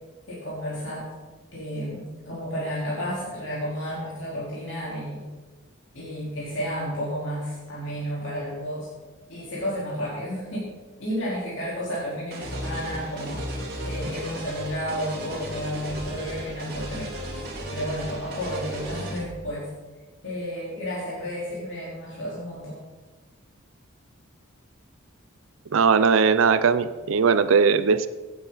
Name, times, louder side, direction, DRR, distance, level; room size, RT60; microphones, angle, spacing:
voice 1, 0.3-1.1 1.5-5.2 5.9-8.9 9.3-10.7 11.0-17.1 17.7-19.7 20.2-22.7, equal, 65° left, -8 dB, 3.8 m, -32 dB
sound 1, 12.3-19.2, right 1 dB, 50° right, 3.2 m, -35 dB
voice 2, 25.7-28.1, right 5 dB, 80° right, 13 dB, 0.5 m, -19 dB
16.5 x 9.2 x 4.0 m, 1.3 s
head